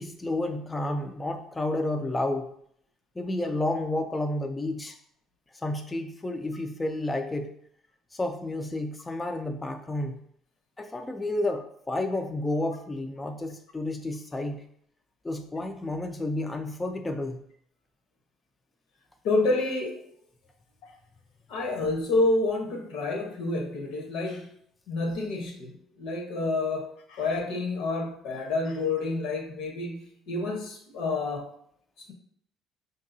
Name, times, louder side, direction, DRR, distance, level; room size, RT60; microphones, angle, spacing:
voice 1, 0.0-2.5 3.2-5.0 5.6-7.5 8.1-10.2 10.8-14.6 15.2-17.4, left 1 dB, 15° left, 5 dB, 0.3 m, -31 dB
voice 2, 19.2-20.0 20.8-20.9 21.5-24.5 24.9-31.5, left 2 dB, 80° left, 3 dB, 0.9 m, -29 dB
5.3 x 2.7 x 2.6 m, 0.68 s
cardioid pair, 125°, 0 cm